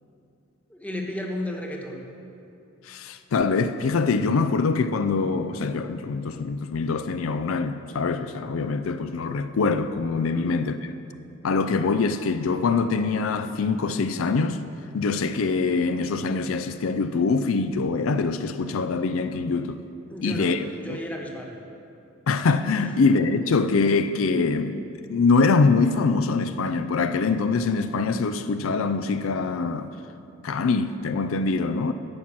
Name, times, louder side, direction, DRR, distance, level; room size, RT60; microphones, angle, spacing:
voice 1, 0.7-2.0 10.3-10.6 20.1-21.5, left 1 dB, 10° left, 1.1 m, -33 dB
voice 2, 2.9-10.9 11.4-14.6 14.9-19.8 20.2-21.0 22.3-24.8 25.1-29.9 30.4-31.9, left 4 dB, 85° left, 0.4 m, -24 dB
10.5 x 5.9 x 8.5 m
head